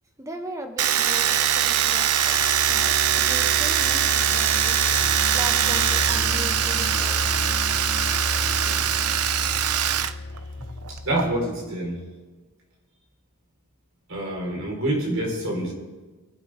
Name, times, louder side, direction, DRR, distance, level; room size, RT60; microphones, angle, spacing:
voice 1, 0.2-7.5, right 1 dB, 15° right, 4 dB, 1.5 m, -38 dB
Domestic sounds home sounds, 0.8-10.1 10.4-11.2, right 10 dB, 90° right, 0.7 m, -22 dB
sound 1, 1.2-11.4, left 2 dB, 60° left, 1.1 m, -32 dB
voice 2, 8.6-8.9 10.6-12.0 14.1-15.7, right 1 dB, 60° right, -1 dB, 5.0 m, -27 dB
23.0 x 12.0 x 3.8 m, 1.3 s
head